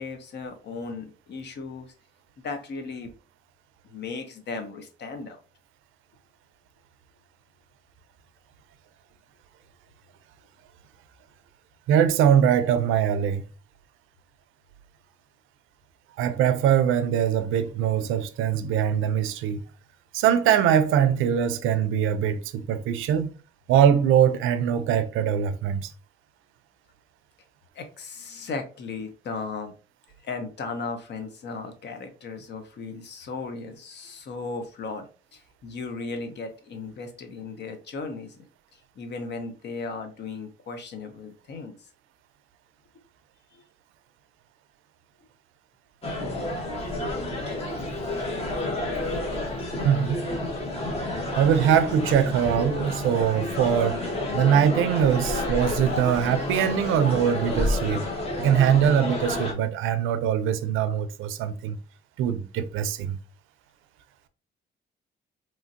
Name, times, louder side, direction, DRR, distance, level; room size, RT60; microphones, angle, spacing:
voice 1, 0.0-1.9 2.4-3.1 3.8-5.4 27.7-29.7 30.2-38.5 39.0-41.8 43.5-43.6, left 4 dB, 60° left, 0.7 m, -36 dB
voice 2, 11.9-13.4 16.2-19.6 20.1-23.3 23.7-25.9 49.8-50.2 51.4-58.1 58.4-61.8 62.2-63.2, right 9 dB, 85° right, 0.4 m, -22 dB
sound 1, 46.0-59.5, left 1 dB, 30° left, 0.9 m, -30 dB
3.1 x 2.5 x 2.6 m
cardioid pair, 90°, 20 cm